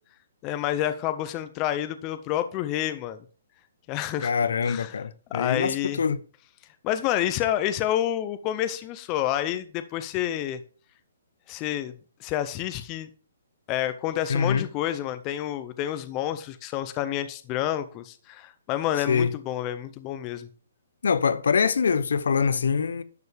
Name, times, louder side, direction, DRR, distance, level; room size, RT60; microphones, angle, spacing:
voice 1, 0.4-3.2 3.9-4.3 4.7-4.9 5.3-6.0 6.8-10.6 11.5-11.9 12.2-13.1 13.7-20.5, left 12 dB, 20° left, 0.5 m, -29 dB
voice 2, 4.2-6.2 14.3-14.7 19.1-19.3 21.0-23.0, left 6 dB, 75° left, 0.7 m, -24 dB
11.0 x 6.8 x 3.4 m
hypercardioid pair, 170°, 0 cm